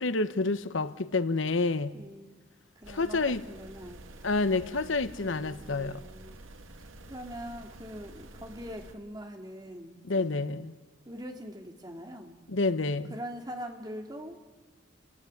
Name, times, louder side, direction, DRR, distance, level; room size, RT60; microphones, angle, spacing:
voice 1, 0.0-1.9 2.9-3.4 4.2-6.0 10.0-10.7 12.5-13.1, left 3 dB, 80° left, 0.9 m, -28 dB
voice 2, 1.9-2.3 2.8-4.0 5.2-6.4 7.1-10.4 11.1-12.4 13.1-14.4, equal, 20° right, 2.4 m, -42 dB
sound 1, 2.8-8.9, right 2 dB, 90° right, 1.8 m, -49 dB
30.0 x 16.0 x 10.0 m
head